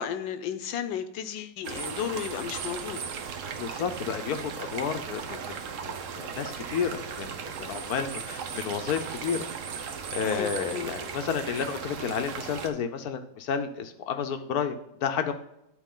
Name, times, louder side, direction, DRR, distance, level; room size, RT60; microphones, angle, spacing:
voice 1, 0.0-3.0 10.2-10.9, left 8 dB, 80° left, 11 dB, 1.4 m, -33 dB
sound 1, 1.6-12.7, right 6 dB, 60° right, 0.8 m, -37 dB
voice 2, 3.6-5.6 6.2-7.3 7.6-9.4 9.8-15.3, left 7 dB, 65° left, 8 dB, 1.0 m, -31 dB
10.5 x 4.6 x 3.7 m, 0.83 s
omnidirectional pair, 2.0 m